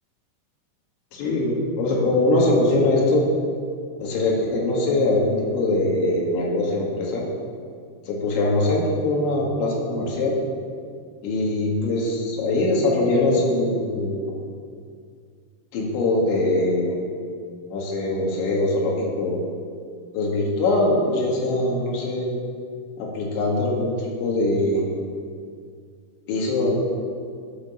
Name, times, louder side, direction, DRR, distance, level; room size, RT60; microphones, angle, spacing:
voice 1, 1.1-3.2 4.0-7.2 8.1-10.4 11.2-14.3 15.7-17.0 17.7-19.4 20.1-22.3 23.0-24.8 26.3-26.7, left 2 dB, 70° left, -3 dB, 4.3 m, -22 dB
16.0 x 6.2 x 7.2 m, 2.2 s
omnidirectional pair, 5.5 m